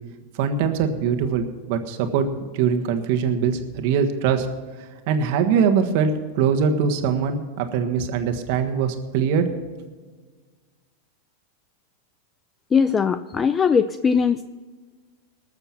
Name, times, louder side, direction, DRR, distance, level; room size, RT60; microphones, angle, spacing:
voice 1, 0.3-4.5 5.1-9.4, right 6 dB, 60° right, 7 dB, 1.5 m, -22 dB
voice 2, 12.7-14.5, left 6 dB, 20° left, 12 dB, 0.4 m, -20 dB
19.5 x 6.8 x 5.9 m, 1.4 s
hypercardioid pair, 120°, 0 cm